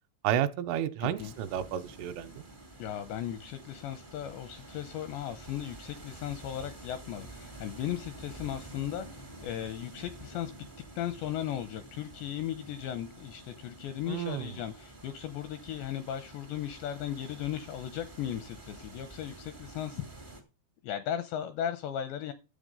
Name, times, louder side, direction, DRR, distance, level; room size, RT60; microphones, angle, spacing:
voice 1, 0.2-2.4 14.1-14.6, right 10 dB, 80° right, 3.2 m, -31 dB
voice 2, 1.0-1.3 2.8-10.7 11.0-20.0 20.8-22.3, left 10 dB, 85° left, 2.6 m, -36 dB
sound 1, 1.1-20.4, right 2 dB, 65° right, 0.5 m, -49 dB
12.5 x 7.9 x 5.3 m
omnidirectional pair, 5.8 m